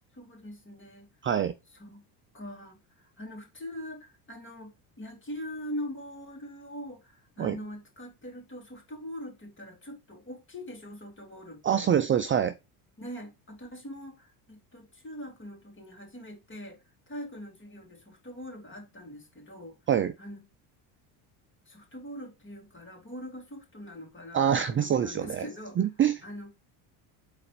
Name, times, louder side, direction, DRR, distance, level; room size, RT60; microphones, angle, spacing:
voice 1, 0.1-1.1 1.8-2.1 2.3-11.9 13.0-19.8 20.2-20.4 21.7-25.9 26.2-26.5, equal, 25° left, 3.5 m, -42 dB
voice 2, 1.2-1.5 7.4-7.6 11.6-12.6 19.9-20.1 24.3-25.4 25.8-26.2, right 9 dB, 25° right, 0.5 m, -25 dB
5.7 x 4.3 x 5.0 m
supercardioid pair, 95°, 46 cm